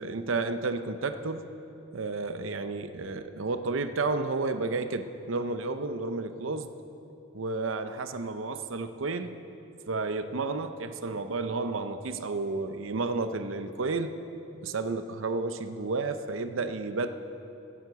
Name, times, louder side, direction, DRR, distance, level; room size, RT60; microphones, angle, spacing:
voice 1, 0.0-1.4 1.9-6.7 7.3-9.3 9.9-14.1 14.6-17.1, right 3 dB, 85° right, 10 dB, 0.7 m, -31 dB
15.5 x 9.4 x 6.8 m, 2.9 s
head